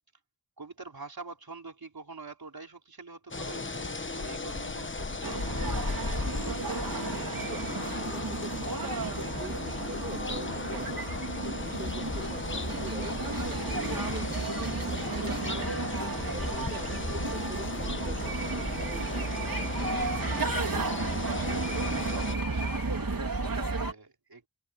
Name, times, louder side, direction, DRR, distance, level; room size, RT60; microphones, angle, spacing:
voice 1, 0.6-6.5 11.5-11.8 16.2-16.5 20.3-24.4, right 4 dB, 85° right, 4.1 m, -45 dB
sound 1, 3.3-22.4, left 3 dB, 35° left, 1.0 m, -36 dB
sound 2, 5.2-23.9, right 3 dB, 70° right, 3.5 m, -33 dB
sound 3, 6.4-18.7, left 3 dB, 65° left, 4.0 m, -45 dB
voice 2, 7.4-11.1 11.6-15.8 16.3-19.4, right 2 dB, 30° right, 6.5 m, -45 dB
wide cardioid pair, 60°, 35 cm